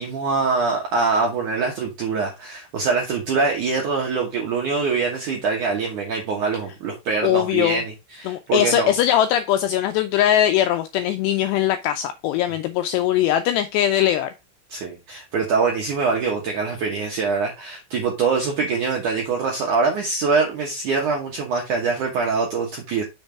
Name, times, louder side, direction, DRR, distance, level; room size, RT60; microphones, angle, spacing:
voice 1, 0.0-8.9 14.7-23.0, right 4 dB, 75° right, 1.8 m, -24 dB
voice 2, 7.2-7.8 8.3-14.3, left 11 dB, 85° left, 2.4 m, -20 dB
6.5 x 5.3 x 4.6 m
omnidirectional pair, 5.4 m